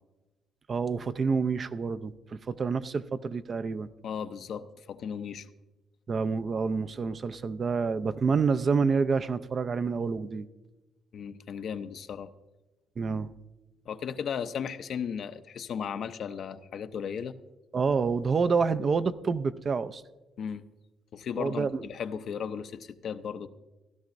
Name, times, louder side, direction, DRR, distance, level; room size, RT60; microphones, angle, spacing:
voice 1, 0.7-3.9 6.1-10.5 13.0-13.3 17.7-20.0 21.4-21.8, right 5 dB, 45° right, 0.4 m, -28 dB
voice 2, 4.0-5.5 11.1-12.3 13.9-17.4 20.4-20.6 21.1-23.5, left 7 dB, 65° left, 0.5 m, -35 dB
15.5 x 12.0 x 2.6 m
cardioid pair, 90°, 0 cm